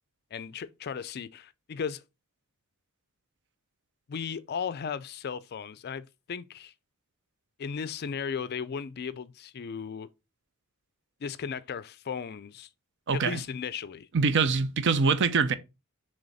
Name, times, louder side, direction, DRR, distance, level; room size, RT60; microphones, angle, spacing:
voice 1, 0.3-2.0 4.1-6.7 7.6-10.1 11.2-12.7 13.1-14.1, left 6 dB, 45° left, 0.4 m, -36 dB
voice 2, 13.1-13.4 14.1-15.5, right 5 dB, 55° right, 0.6 m, -24 dB
7.1 x 3.4 x 4.1 m
head